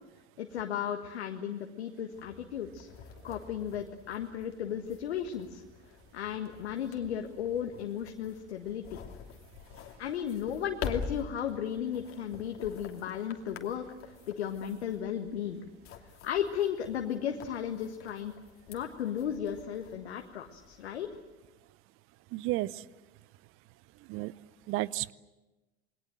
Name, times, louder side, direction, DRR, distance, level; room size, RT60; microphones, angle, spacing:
voice 1, 0.4-2.9 3.2-5.6 6.1-9.0 10.0-15.6 16.2-18.3 18.7-21.1, left 9 dB, 70° left, 4 dB, 1.7 m, -35 dB
sound 1, 2.1-21.2, left 6 dB, 40° left, 2.9 m, -47 dB
voice 2, 22.3-22.8 24.1-24.3 24.7-25.1, right 18 dB, 40° right, 21 dB, 0.8 m, -32 dB
28.0 x 21.5 x 7.6 m, 1.1 s
figure-of-eight pair, 85°, 34 cm